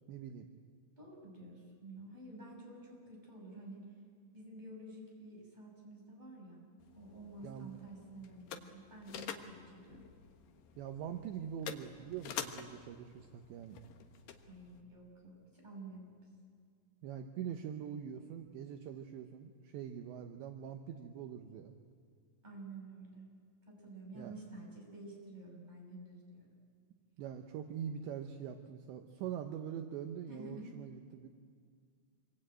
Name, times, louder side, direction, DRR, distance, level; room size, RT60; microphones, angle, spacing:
voice 1, 0.1-0.5 7.4-7.7 10.8-13.8 17.0-21.7 24.2-24.3 27.2-31.3, right 8 dB, 75° right, 5 dB, 3.0 m, -43 dB
voice 2, 1.0-4.0 4.3-6.7 6.9-8.6 8.9-10.1 14.4-16.2 22.4-23.2 23.6-26.5 30.3-30.7, right 2 dB, 10° right, -1 dB, 6.1 m, -50 dB
sound 1, 6.8-14.8, left 8 dB, 70° left, 2.2 m, -48 dB
26.0 x 24.0 x 9.0 m, 2.1 s
omnidirectional pair, 5.8 m